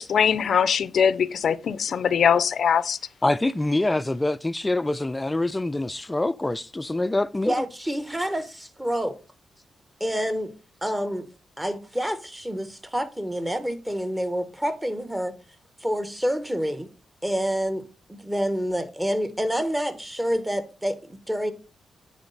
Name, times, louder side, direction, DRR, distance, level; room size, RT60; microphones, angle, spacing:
voice 1, 0.0-3.0, left 7 dB, 65° left, 0.5 m, -22 dB
voice 2, 3.2-7.5, left 2 dB, 15° left, 0.4 m, -25 dB
voice 3, 7.4-9.2 10.0-10.5 10.8-11.2 11.6-15.3 15.8-16.9 17.2-17.8 18.1-21.5, equal, 10° right, 1.1 m, -27 dB
9.6 x 4.2 x 4.0 m
cardioid pair, 90°, 0 cm